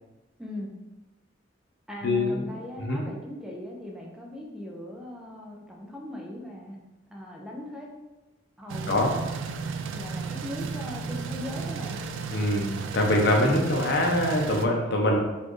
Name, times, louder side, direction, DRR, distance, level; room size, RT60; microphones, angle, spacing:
voice 1, 0.4-0.7 1.9-6.8 7.1-7.9 8.6-9.3 9.9-12.0, left 1 dB, 5° right, -2 dB, 0.5 m, -39 dB
voice 2, 2.0-2.5 2.8-3.0 8.9-9.1 12.3-15.2, left 1 dB, 60° left, 1 dB, 0.7 m, -24 dB
sound 1, 8.7-14.7, right 5 dB, 75° right, 0.3 m, -34 dB
4.2 x 2.5 x 3.1 m, 1.1 s
head